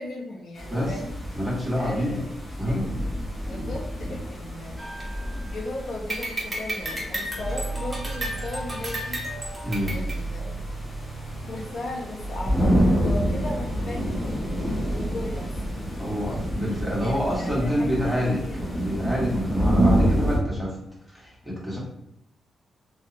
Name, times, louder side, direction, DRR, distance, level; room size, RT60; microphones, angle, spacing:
voice 1, 0.0-1.2 1.8-2.3 2.6-2.8 3.5-4.8 5.4-9.2 9.8-10.6 11.5-14.4 14.9-15.8 17.0-18.8, left 2 dB, 75° left, -3 dB, 0.6 m, -37 dB
sound 1, 0.6-20.4, equal, 10° left, 0.8 m, -28 dB
voice 2, 1.3-2.3 2.6-2.9 9.6-9.9 16.0-18.4 18.8-20.8 21.1-21.8, equal, 5° right, -7 dB, 1.2 m, -27 dB
sound 2, 4.8-5.7 6.1-10.2, right 1 dB, 20° right, 0.7 m, -33 dB
sound 3, 5.1-5.4 7.4-9.5 9.8-16.9, right 3 dB, 60° right, 0.5 m, -36 dB
2.7 x 2.0 x 2.5 m, 0.78 s
cardioid pair, 95°, 0 cm